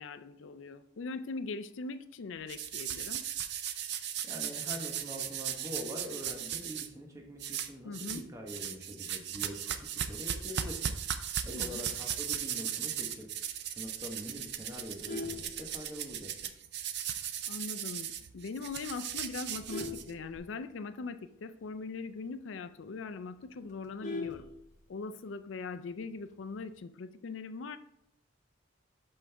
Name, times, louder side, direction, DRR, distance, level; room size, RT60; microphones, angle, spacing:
voice 1, 0.0-3.2 7.8-8.3 11.5-11.8 17.5-24.5 24.9-27.8, left 4 dB, 70° left, 12 dB, 0.4 m, -41 dB
sound 1, 2.5-6.9 7.4-8.2 8.5-20.4, right 9 dB, 60° right, 0.5 m, -37 dB
voice 2, 4.2-13.3 13.6-16.6, equal, 15° right, 0 dB, 1.0 m, -44 dB
Vehicle horn car horn honking, 14.8-16.3 16.7-17.0 17.3-17.4 17.8-17.9 18.2-18.6 19.1-21.0 21.3-21.4 21.7-21.8 22.2-22.3 22.7-22.8 23.0-25.1 26.3-26.7, left 3 dB, 40° left, 1.1 m, -41 dB
6.2 x 5.5 x 3.4 m, 0.74 s
head